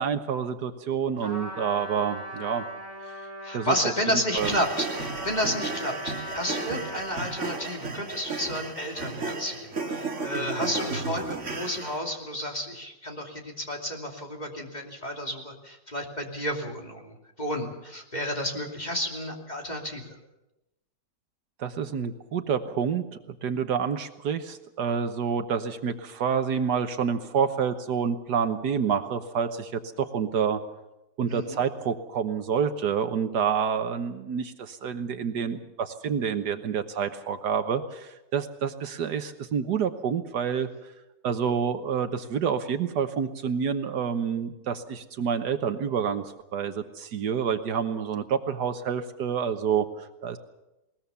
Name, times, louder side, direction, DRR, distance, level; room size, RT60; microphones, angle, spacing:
voice 1, 0.0-2.6 3.5-3.9 4.3-4.5 21.6-30.6 31.2-40.7 41.2-50.4, right 7 dB, 70° right, 9 dB, 1.6 m, -28 dB
Trumpet, 1.2-7.8, equal, 20° right, 4.6 m, -40 dB
voice 2, 3.4-20.2 31.3-31.6, equal, 25° left, 1 dB, 2.8 m, -31 dB
sound 1, 4.4-12.0, right 3 dB, 40° right, 2.5 m, -34 dB
21.0 x 19.5 x 6.9 m, 0.97 s
omnidirectional pair, 1.9 m